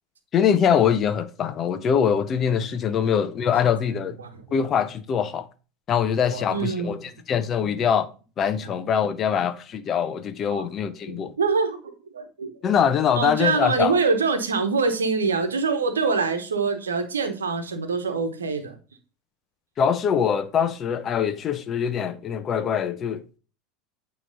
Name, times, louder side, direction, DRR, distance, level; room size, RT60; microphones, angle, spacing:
voice 1, 0.3-4.2 4.5-5.5 5.9-8.1 8.4-11.3 12.6-14.0 19.8-23.2, left 8 dB, 35° left, 0.7 m, -23 dB
voice 2, 6.3-7.0 7.6-7.7 10.5-10.6 11.1-11.8 12.1-12.5 13.1-18.7, right 4 dB, 85° right, 1.0 m, -25 dB
9.0 x 3.1 x 3.9 m
hypercardioid pair, 80°, 0 cm